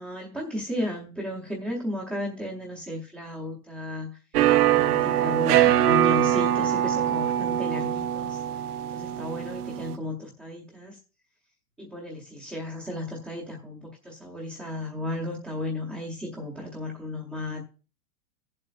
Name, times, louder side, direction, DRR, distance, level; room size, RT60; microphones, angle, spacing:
voice 1, 0.0-4.2 4.7-8.4 8.9-11.0 11.8-17.7, left 1 dB, 5° right, -6 dB, 0.7 m, -34 dB
sound 1, 4.3-10.0, right 12 dB, 80° right, 0.8 m, -23 dB
17.5 x 7.6 x 2.4 m, 0.36 s
supercardioid pair, 175°, 45 cm